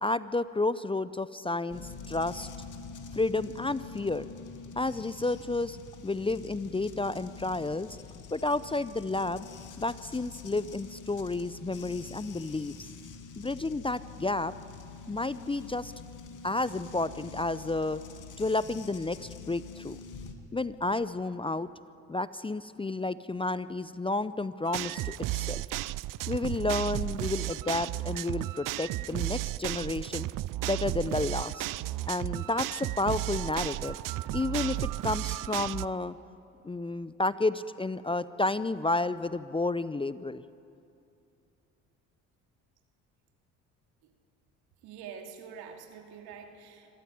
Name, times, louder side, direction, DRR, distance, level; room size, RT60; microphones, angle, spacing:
voice 1, 0.0-2.5 3.1-4.3 4.8-5.8 6.0-8.0 8.3-9.5 9.8-12.7 13.4-14.5 15.1-15.9 16.4-18.0 18.4-20.0 20.5-21.7 22.1-25.6 26.3-30.3 30.6-31.6 32.1-34.0 34.3-36.2 36.6-40.4, left 2 dB, 15° left, 16 dB, 0.6 m, -31 dB
sound 1, 1.7-20.3, left 5 dB, 50° left, 2.4 m, -46 dB
sound 2, 24.7-35.9, right 16 dB, 55° right, 0.5 m, -33 dB
voice 2, 44.8-47.0, right 6 dB, 75° right, 4 dB, 2.5 m, -46 dB
25.5 x 14.0 x 9.5 m, 2.6 s
hypercardioid pair, 55°, 38 cm